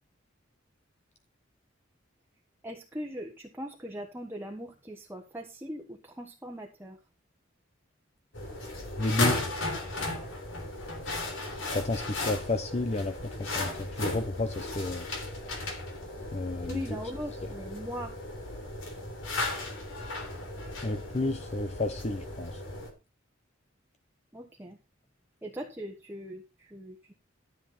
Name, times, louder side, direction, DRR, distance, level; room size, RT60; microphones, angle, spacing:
voice 1, 2.6-7.0 16.7-18.1 24.3-24.8 25.4-27.1, equal, 10° right, 1.3 m, -40 dB
sound 1, 8.3-22.9, left 2 dB, 80° left, 3.6 m, -36 dB
voice 2, 9.0-9.4 11.7-15.1 16.3-16.8 20.8-22.6, left 2 dB, 35° left, 0.8 m, -31 dB
13.0 x 7.5 x 4.3 m
head